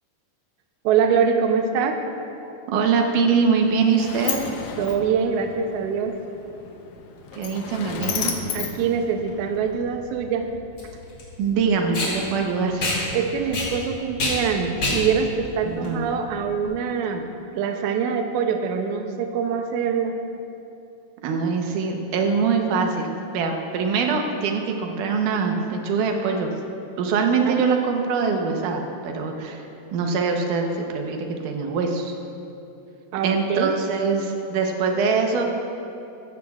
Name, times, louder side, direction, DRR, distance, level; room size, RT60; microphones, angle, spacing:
voice 1, 0.8-2.0 4.8-6.1 8.5-10.5 13.1-17.3 17.5-20.1 27.4-27.7 33.1-33.8, right 6 dB, 90° right, 5 dB, 1.7 m, -24 dB
voice 2, 2.7-4.4 7.3-8.3 11.4-13.0 15.6-16.0 21.2-26.5 27.0-29.6 29.9-32.1 33.2-35.4, right 5 dB, 70° right, 3 dB, 2.2 m, -23 dB
Sliding door, 3.4-9.8, left 7 dB, 75° left, 1.8 m, -33 dB
Packing tape duct tape, 9.2-16.7, left 2 dB, 35° left, 2.8 m, -29 dB
15.0 x 14.0 x 2.4 m, 2.8 s
omnidirectional pair, 4.3 m